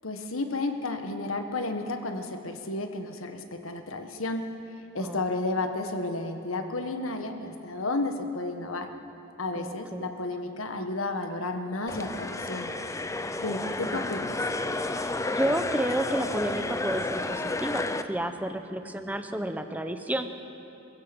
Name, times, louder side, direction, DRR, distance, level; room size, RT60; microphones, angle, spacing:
voice 1, 0.0-4.4 4.9-8.9 9.4-12.7 13.4-14.3, left 2 dB, 85° left, 6 dB, 1.6 m, -32 dB
voice 2, 9.6-10.1 13.6-14.1 14.8-20.3, right 1 dB, 10° right, 7 dB, 0.9 m, -31 dB
sound 1, 11.9-18.0, left 2 dB, 15° left, 0.6 m, -31 dB
27.0 x 16.0 x 6.2 m, 2.8 s
head